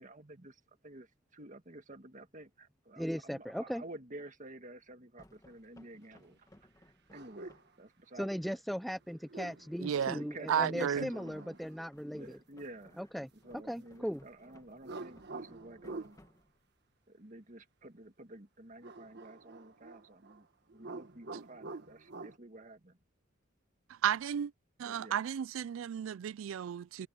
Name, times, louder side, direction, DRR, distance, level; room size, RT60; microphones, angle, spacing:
voice 1, 0.0-8.6 10.0-11.6 12.1-16.2 17.1-23.0 24.8-25.2, right 2 dB, 40° right, 1.8 m, -51 dB
voice 2, 3.0-3.8 8.2-12.4 13.0-13.3 13.7-14.2, equal, ahead, 0.5 m, -38 dB
sound 1, 5.2-7.8 10.9-16.8, left 1 dB, 15° left, 1.9 m, -63 dB
sound 2, 7.1-7.7 9.1-9.8 10.8-11.9 14.8-16.2 18.8-20.4 20.7-22.4, right 3 dB, 55° right, 1.5 m, -47 dB
voice 3, 9.8-10.2 10.5-11.1 23.9-24.5 24.8-27.1, right 8 dB, 75° right, 0.3 m, -33 dB
head